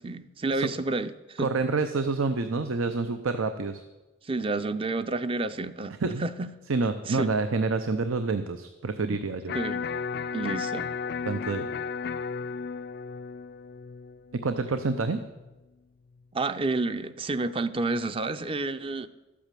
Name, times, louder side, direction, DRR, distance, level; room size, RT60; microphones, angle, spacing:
voice 1, 0.0-1.5 4.2-6.5 7.1-7.3 9.0-9.2 9.5-9.9 10.3-10.8 16.3-19.1, right 3 dB, 25° right, 12 dB, 0.5 m, -30 dB
voice 2, 1.4-3.8 6.0-6.2 6.7-9.5 11.3-11.7 14.4-15.2, right 3 dB, 90° right, 9 dB, 0.7 m, -27 dB
Electric guitar, 9.5-15.5, left 6 dB, 50° left, 0.3 m, -34 dB
13.0 x 8.5 x 7.5 m, 1.1 s
head